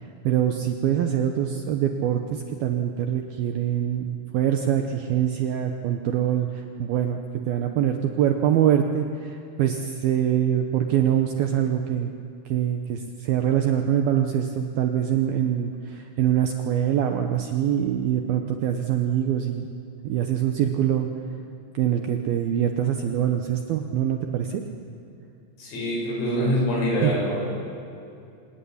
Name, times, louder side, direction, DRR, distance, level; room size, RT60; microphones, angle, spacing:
voice 1, 0.2-7.2 7.4-12.1 12.5-19.7 20.0-21.1 21.7-24.6 27.0-27.1, right 10 dB, 80° right, 4 dB, 2.2 m, -24 dB
voice 2, 25.6-27.5, equal, 85° left, -2 dB, 9.8 m, -25 dB
26.5 x 19.0 x 9.8 m, 2.6 s
omnidirectional pair, 5.9 m